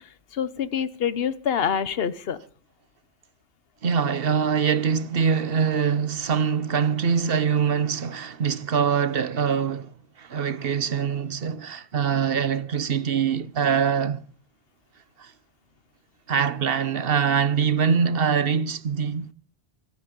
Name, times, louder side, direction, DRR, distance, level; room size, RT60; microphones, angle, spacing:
voice 1, 0.3-2.4, left 8 dB, 70° left, 1.2 m, -26 dB
voice 2, 3.8-14.3 15.2-15.3 16.3-19.3, right 7 dB, 65° right, 1.2 m, -24 dB
25.0 x 9.5 x 5.3 m
omnidirectional pair, 1.0 m